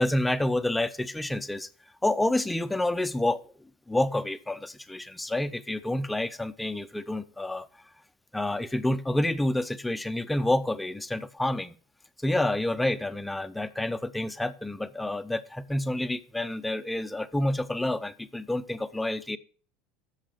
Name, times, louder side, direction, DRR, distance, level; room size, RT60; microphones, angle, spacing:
voice 1, 0.0-1.7 2.0-3.4 3.9-7.7 8.3-11.7 12.2-19.4, left 1 dB, 10° left, 12 dB, 0.7 m, -28 dB
7.6 x 6.5 x 7.4 m, 0.41 s
hypercardioid pair, 75°, 0 cm